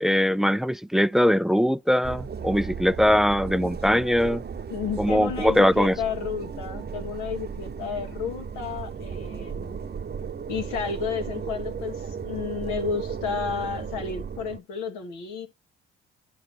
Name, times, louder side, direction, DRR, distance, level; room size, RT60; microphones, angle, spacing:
voice 1, 0.0-4.4 5.0-5.9, equal, ahead, 0.3 m, -21 dB
sound 1, 2.0-14.6, right 6 dB, 35° right, 0.8 m, -35 dB
voice 2, 4.7-9.8 10.5-15.5, left 6 dB, 80° left, 1.6 m, -32 dB
12.0 x 4.7 x 2.9 m
hypercardioid pair, 50°, 29 cm